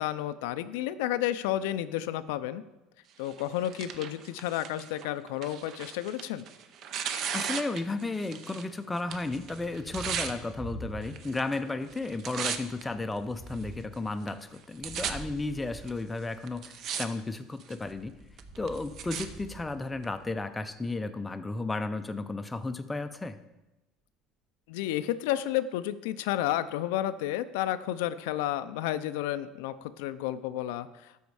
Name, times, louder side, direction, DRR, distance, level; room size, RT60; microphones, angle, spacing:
voice 1, 0.0-2.6 3.2-6.5 24.7-31.1, left 13 dB, 85° left, 12 dB, 0.4 m, -31 dB
Tearing, 3.2-8.7 9.0-10.3 11.1-11.6 11.9-12.8 13.5-13.6 14.3-14.4 14.5-15.1 15.9-16.0 16.5-17.1 17.4-17.8 18.4-19.3 20.0-20.1, right 8 dB, 45° right, 0.6 m, -36 dB
voice 2, 7.3-18.1 18.6-23.4, left 2 dB, 10° left, 9 dB, 0.4 m, -34 dB
Thunder, 9.1-11.5 11.8-16.7 17.7-20.4, right 2 dB, 25° right, 1.6 m, -47 dB
12.5 x 4.3 x 4.7 m, 0.97 s
cardioid pair, 140°, 0 cm